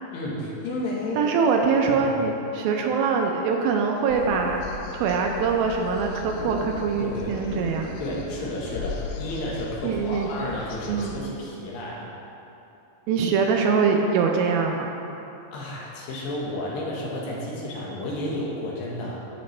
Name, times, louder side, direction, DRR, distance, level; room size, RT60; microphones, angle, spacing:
voice 1, 0.1-1.3 1.9-2.1 7.0-7.5 8.0-12.1 15.5-19.2, left 1 dB, 70° left, -4 dB, 2.8 m, -32 dB
voice 2, 1.2-4.6 4.9-7.9 9.8-10.3 10.9-11.2 13.1-14.9, right 5 dB, 80° right, 2 dB, 2.3 m, -23 dB
sound 1, 4.1-11.2, left 4 dB, 90° left, 1.8 m, -38 dB
sound 2, 6.0-8.5, equal, 30° left, 1.8 m, -40 dB
14.0 x 5.2 x 3.2 m, 2.9 s
omnidirectional pair, 4.4 m